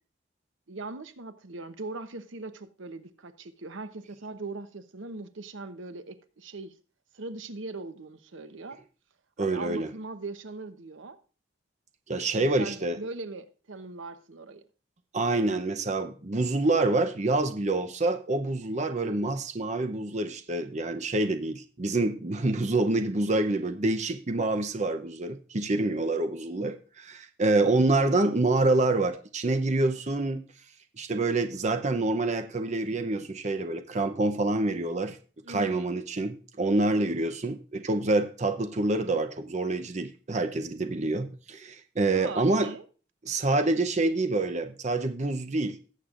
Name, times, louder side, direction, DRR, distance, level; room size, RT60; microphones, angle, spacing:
voice 1, 0.7-6.8 7.1-8.8 9.4-11.2 12.3-14.6 35.4-35.9 42.1-42.8, right 3 dB, 90° right, 0.9 m, -40 dB
voice 2, 9.4-9.9 12.1-13.0 15.1-30.4 31.0-35.2 35.5-42.7 43.3-45.8, right 2 dB, 35° right, 0.7 m, -27 dB
18.0 x 7.5 x 2.5 m
head